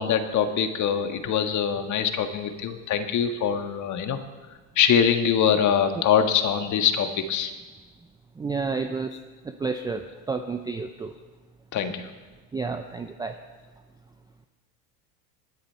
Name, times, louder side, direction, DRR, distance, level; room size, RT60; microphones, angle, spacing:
voice 1, 0.0-4.2 4.7-7.5 11.7-12.1, left 8 dB, 35° left, 7 dB, 1.7 m, -23 dB
voice 2, 8.4-9.1 9.4-11.1 12.5-13.4, right 4 dB, 10° right, 6 dB, 0.5 m, -30 dB
25.0 x 10.0 x 4.5 m, 1.3 s
supercardioid pair, 110°, 49 cm